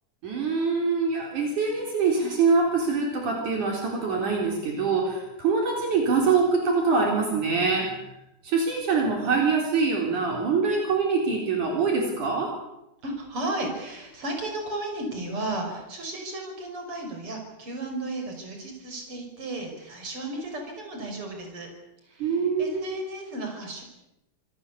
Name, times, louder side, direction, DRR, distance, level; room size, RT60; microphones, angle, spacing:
voice 1, 0.2-8.0 8.4-12.5 22.2-22.8, right 4 dB, 65° right, 1 dB, 5.3 m, -24 dB
voice 2, 13.0-21.7 22.1-23.8, right 2 dB, 40° right, 3 dB, 6.5 m, -34 dB
26.5 x 19.5 x 8.5 m, 0.90 s
omnidirectional pair, 3.7 m